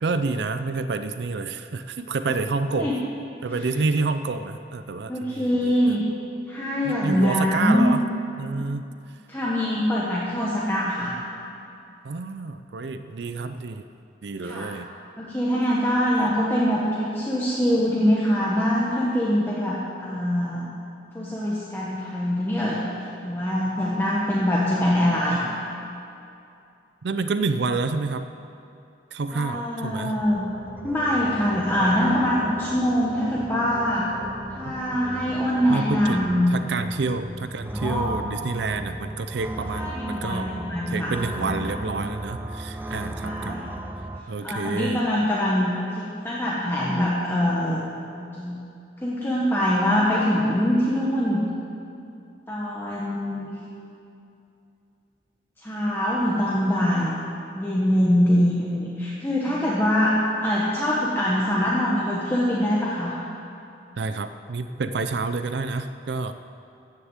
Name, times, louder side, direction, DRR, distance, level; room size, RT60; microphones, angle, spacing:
voice 1, 0.0-2.9 3.4-6.0 6.8-8.0 8.4-8.9 12.0-13.8 14.2-14.9 27.0-28.3 29.1-30.1 34.6-34.7 35.7-40.5 40.9-43.6 44.3-45.0 64.0-66.3, right 3 dB, 70° right, 10 dB, 0.5 m, -28 dB
voice 2, 5.1-6.0 6.5-7.9 9.3-11.1 14.4-14.7 15.2-20.7 21.1-22.8 23.2-25.4 29.3-30.5 30.8-34.1 34.5-36.5 37.7-38.2 39.7-41.1 41.4-41.7 43.2-43.6 44.4-47.8 48.3-48.6 49.0-51.4 52.5-53.6 55.6-57.2 57.5-63.2, equal, 10° left, -6 dB, 1.2 m, -23 dB
sound 1, 30.2-44.2, right 1 dB, 10° right, 0.5 m, -36 dB
14.5 x 6.9 x 8.1 m, 2.6 s
head